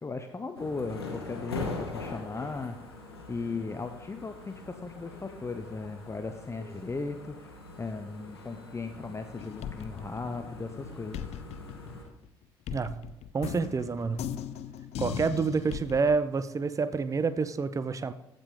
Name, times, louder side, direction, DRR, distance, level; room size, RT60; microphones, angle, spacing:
voice 1, 0.0-2.8 3.3-11.3, left 3 dB, 20° left, 7 dB, 0.8 m, -37 dB
sound 1, 0.5-12.0, left 3 dB, 90° left, 1.1 m, -42 dB
sound 2, 9.4-10.8 11.1-16.2, left 10 dB, 55° left, 0.6 m, -39 dB
voice 2, 12.7-13.1 13.3-14.3 15.0-18.1, right 4 dB, 25° right, 12 dB, 0.6 m, -28 dB
15.0 x 5.2 x 3.7 m, 0.92 s
figure-of-eight pair, 45°, 13 cm